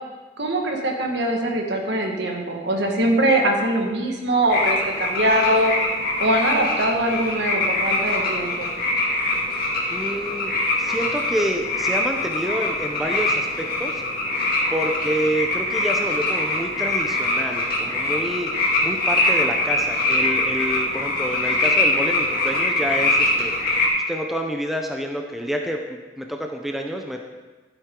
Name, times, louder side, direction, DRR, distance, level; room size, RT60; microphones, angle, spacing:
voice 1, 0.4-5.7 6.2-8.7, right 1 dB, 75° right, 1 dB, 1.7 m, -22 dB
sound 1, 4.5-23.9, left 2 dB, 55° left, 2.4 m, -23 dB
voice 2, 9.9-14.0 14.7-18.5 18.8-23.5 24.1-27.2, equal, ahead, 2 dB, 0.7 m, -28 dB
12.0 x 9.1 x 3.8 m, 1.3 s
head